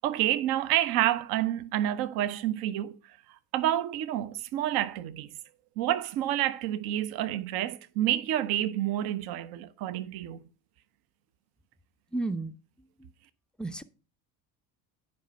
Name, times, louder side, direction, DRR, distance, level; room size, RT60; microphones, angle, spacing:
voice 1, 0.0-3.0 3.5-5.3 5.8-10.4, right 13 dB, 45° right, 0.7 m, -29 dB
voice 2, 12.1-13.1 13.6-13.8, right 2 dB, ahead, 0.5 m, -34 dB
9.3 x 5.2 x 5.4 m
figure-of-eight pair, 55°, 50 cm